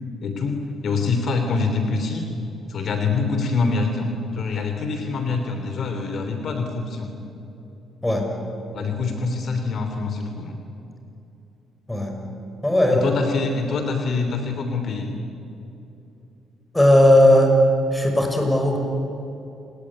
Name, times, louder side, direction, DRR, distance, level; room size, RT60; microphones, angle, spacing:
voice 1, 0.2-2.3 2.7-4.1 4.3-7.1 8.7-10.5 12.9-15.1, left 4 dB, 60° left, 5 dB, 3.2 m, -25 dB
voice 2, 12.6-13.1 16.7-17.5 17.9-18.8, left 1 dB, 10° left, 3 dB, 6.0 m, -16 dB
28.0 x 18.5 x 9.9 m, 2.8 s
cardioid pair, 90°, 0 cm